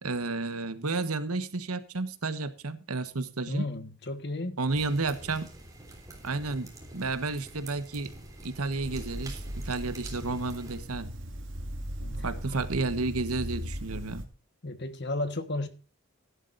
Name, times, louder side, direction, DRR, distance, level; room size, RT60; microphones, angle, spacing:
voice 1, 0.0-3.7 4.6-5.5 6.2-8.1 8.4-11.1 12.2-14.2, right 3 dB, 80° right, 1.3 m, -31 dB
voice 2, 3.5-4.6 12.0-12.2 12.5-12.6 14.6-15.7, left 2 dB, 50° left, 1.4 m, -33 dB
sound 1, 4.7-10.8, right 1 dB, 15° right, 3.2 m, -46 dB
sound 2, 8.8-14.3, equal, 55° right, 2.3 m, -38 dB
16.5 x 11.0 x 2.6 m
head